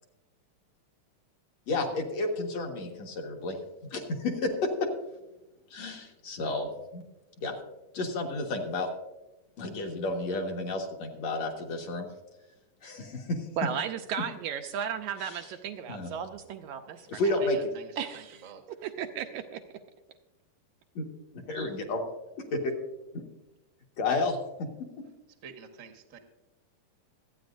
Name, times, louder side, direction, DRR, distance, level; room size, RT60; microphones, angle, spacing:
voice 1, 1.7-3.6 3.8-4.7 5.7-7.0 7.4-7.5 7.9-8.9 9.6-12.1 12.8-13.4 15.2-15.4 15.9-16.1 17.1-17.6 21.0-21.1 21.5-22.0 22.6-22.7 23.1-23.2 24.0-24.4, left 2 dB, 55° left, 2 dB, 2.5 m, -31 dB
voice 2, 13.6-17.2 18.0-19.6, right 8 dB, 80° right, 6 dB, 1.8 m, -35 dB
voice 3, 17.4-18.6 25.4-26.2, right 6 dB, 50° right, 4 dB, 0.9 m, -48 dB
25.0 x 9.3 x 2.5 m, 1.0 s
omnidirectional pair, 3.8 m